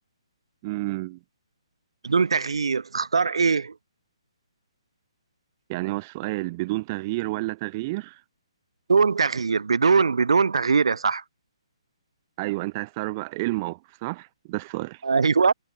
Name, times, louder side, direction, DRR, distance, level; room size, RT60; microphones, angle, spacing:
voice 1, 0.6-1.2 5.7-8.2 12.4-15.0, right 22 dB, 30° right, 2.4 m, -30 dB
voice 2, 2.0-3.7 8.9-11.2 15.0-15.5, right 5 dB, 65° right, 1.4 m, -21 dB
figure-of-eight pair, 135°, 3 cm